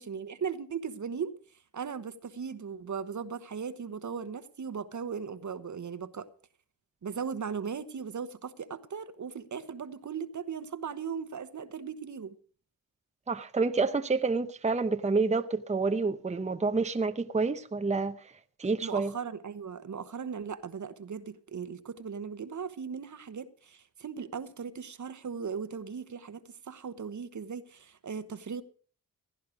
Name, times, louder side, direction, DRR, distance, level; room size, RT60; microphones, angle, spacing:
voice 1, 0.0-1.3 1.7-6.3 7.0-12.3 18.8-28.6, right 6 dB, 55° right, 1.1 m, -38 dB
voice 2, 13.3-18.2 18.6-19.1, right 4 dB, 20° right, 0.8 m, -28 dB
16.5 x 10.5 x 5.0 m
cardioid pair, 65°, 35 cm